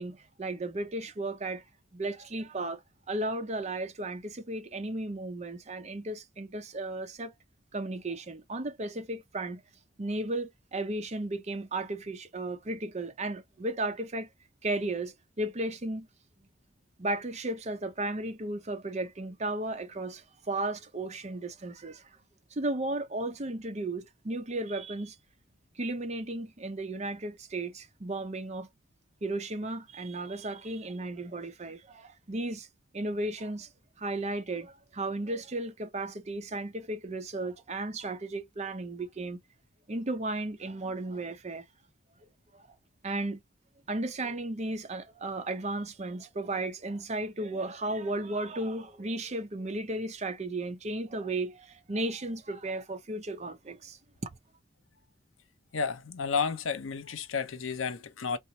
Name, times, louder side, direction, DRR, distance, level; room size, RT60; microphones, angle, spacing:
voice 1, 0.0-1.6 1.9-7.3 7.7-9.6 10.0-14.3 14.6-16.1 17.0-22.1 22.5-25.2 25.8-28.7 29.2-32.7 32.9-33.7 34.0-39.4 39.9-41.6 42.5-42.6 43.0-43.4 43.9-54.3, right 2 dB, 35° right, 0.6 m, -34 dB
voice 2, 55.7-58.4, left 5 dB, 85° left, 0.6 m, -32 dB
4.3 x 2.0 x 2.6 m
head